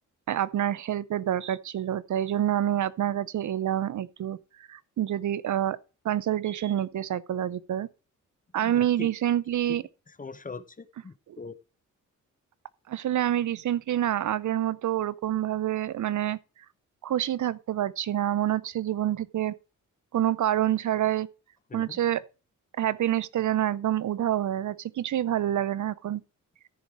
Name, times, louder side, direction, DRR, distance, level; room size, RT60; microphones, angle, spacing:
voice 1, 0.3-4.4 4.7-5.8 6.0-7.9 8.5-9.8 11.3-11.4 12.9-16.4 17.0-19.5 20.1-21.3 21.7-22.2 22.8-26.2, right 11 dB, 65° right, 0.6 m, -27 dB
voice 2, 8.6-9.1 10.2-11.5 21.7-22.0, left 4 dB, 25° left, 0.8 m, -41 dB
13.5 x 5.3 x 4.6 m
cardioid pair, 100°, 32 cm